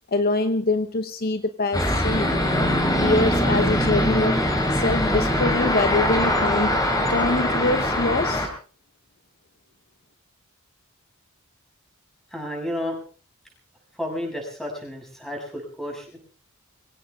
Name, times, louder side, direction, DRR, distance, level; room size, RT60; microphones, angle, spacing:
voice 1, 0.1-2.3 3.0-4.4 4.7-8.5, left 2 dB, 45° left, 9 dB, 0.9 m, -24 dB
sound 1, 1.7-8.5, left 1 dB, 15° left, 4.4 m, -22 dB
voice 2, 12.3-13.0 14.0-16.2, left 1 dB, ahead, 0 dB, 7.0 m, -31 dB
23.5 x 17.0 x 3.6 m, 0.39 s
head